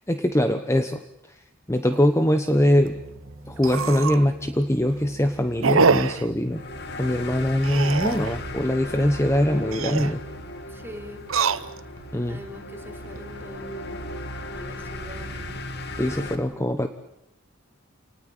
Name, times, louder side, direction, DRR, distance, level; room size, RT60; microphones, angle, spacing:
voice 1, 0.1-1.0 1.3-1.4 1.7-3.0 3.5-6.6 7.0-10.2 12.1-12.4 16.0-16.9, left 1 dB, 15° left, 7 dB, 1.1 m, -22 dB
sound 1, 1.9-2.1 2.5-2.6 2.9-3.0 3.6-4.3 4.7-5.0 5.6-6.3 7.6-8.4 9.6-10.2 11.2-12.0 12.6-13.2, right 4 dB, 85° right, 1.0 m, -24 dB
sound 2, 2.6-13.8, right 1 dB, 30° right, 1.9 m, -47 dB
sound 3, 6.5-16.4, left 1 dB, 55° left, 2.4 m, -36 dB
voice 2, 10.7-11.3 12.3-14.1 14.5-15.7 16.5-16.7, left 1 dB, 10° right, 1 dB, 4.2 m, -43 dB
29.0 x 19.0 x 9.1 m, 0.84 s
head